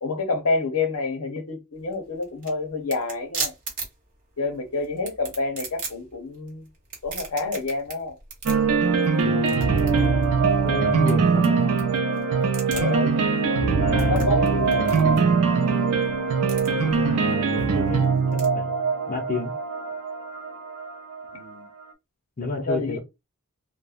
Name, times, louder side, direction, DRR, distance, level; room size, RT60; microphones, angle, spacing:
voice 1, 0.0-3.5 4.4-6.7 7.0-8.2 12.7-13.2 14.0-15.2 21.3-21.7 22.5-23.0, left 3 dB, 70° left, 0.7 m, -28 dB
sound 1, 1.7-18.5, right 4 dB, 40° right, 0.9 m, -39 dB
sound 2, 8.5-21.4, right 5 dB, 75° right, 0.5 m, -22 dB
voice 2, 9.2-9.8 10.6-11.7 13.7-15.2 16.7-18.0 18.3-19.6 22.4-23.0, left 2 dB, 40° left, 0.6 m, -31 dB
3.0 x 2.0 x 2.4 m
head